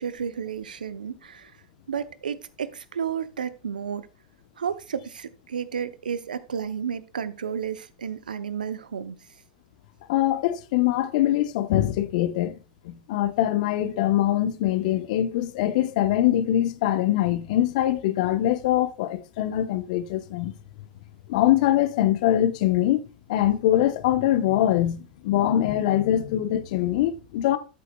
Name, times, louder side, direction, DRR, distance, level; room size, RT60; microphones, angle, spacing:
voice 1, 0.0-1.5 1.9-4.1 4.6-9.2, right 7 dB, 85° right, 0.7 m, -32 dB
voice 2, 10.1-12.5 12.8-20.5 21.3-23.0 23.3-27.6, left 12 dB, 65° left, 1.0 m, -23 dB
12.5 x 8.3 x 2.3 m
hypercardioid pair, 95°, 4 cm